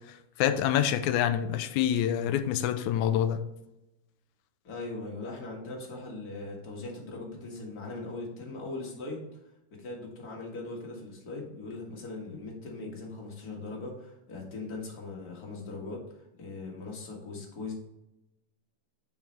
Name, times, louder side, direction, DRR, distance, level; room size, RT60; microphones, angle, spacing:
voice 1, 0.1-3.4, left 10 dB, 85° left, 2.0 m, -27 dB
voice 2, 4.6-9.3 9.8-17.7, left 3 dB, 35° left, 1.8 m, -40 dB
7.1 x 5.7 x 3.3 m
omnidirectional pair, 3.4 m